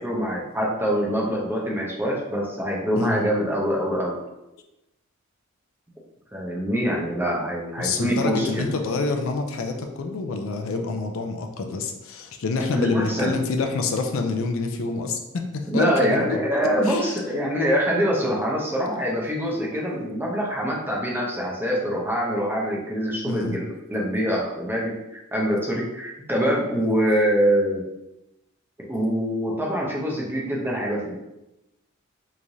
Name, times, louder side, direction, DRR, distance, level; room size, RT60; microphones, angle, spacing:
voice 1, 0.0-4.2 6.3-8.7 12.7-13.3 15.7-27.8 28.9-31.1, equal, 10° right, -3 dB, 0.6 m, -24 dB
voice 2, 7.8-15.2 15.5-16.4 16.8-17.2 23.3-23.6 26.7-26.9, left 3 dB, 65° left, 4 dB, 0.4 m, -27 dB
3.6 x 3.1 x 2.6 m, 0.94 s
head